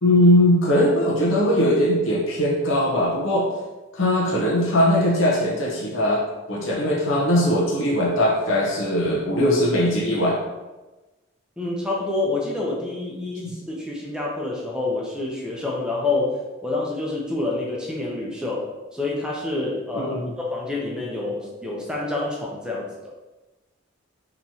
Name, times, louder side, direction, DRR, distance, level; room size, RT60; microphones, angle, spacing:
voice 1, 0.0-3.5 3.9-6.2 6.5-10.4 19.9-20.3, left 1 dB, 75° left, -4 dB, 0.8 m, -20 dB
voice 2, 11.6-22.9, left 2 dB, 5° right, -3 dB, 0.6 m, -27 dB
3.8 x 3.0 x 2.7 m, 1.1 s
head